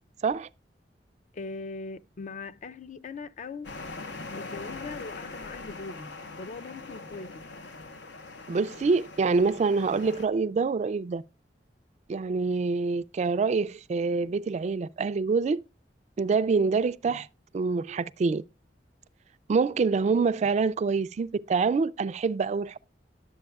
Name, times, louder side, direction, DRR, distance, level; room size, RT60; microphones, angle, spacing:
voice 1, 1.3-3.7 4.3-7.5, left 4 dB, 45° left, 0.4 m, -40 dB
sound 1, 3.6-10.3, left 3 dB, 85° left, 0.8 m, -42 dB
voice 2, 8.5-11.2 12.1-15.6 16.2-17.3 17.5-18.4 19.5-22.8, right 4 dB, 40° right, 0.3 m, -26 dB
11.5 x 7.7 x 2.2 m
head